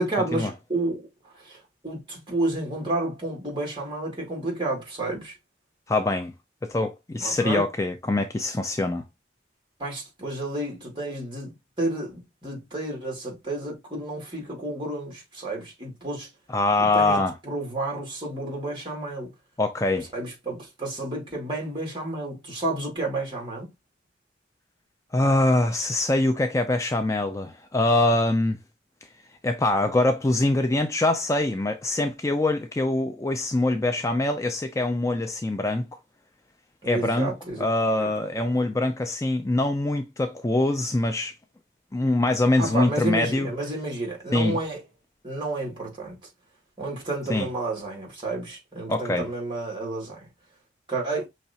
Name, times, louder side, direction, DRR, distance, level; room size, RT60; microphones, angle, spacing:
voice 1, 0.0-1.6 1.8-5.4 7.2-7.6 9.8-16.3 16.8-19.3 20.1-23.7 36.8-37.6 38.0-38.1 42.6-44.8 45.2-46.2 46.8-50.3 50.9-51.3, right 2 dB, 25° right, 2.4 m, -31 dB
voice 2, 5.9-6.3 6.6-9.0 16.5-17.3 19.6-20.1 25.1-28.6 29.4-35.9 36.8-37.3 37.6-41.3 41.9-43.5 44.3-44.6 47.3-47.5 48.9-49.3, left 2 dB, 15° left, 0.3 m, -24 dB
5.7 x 3.1 x 2.8 m
head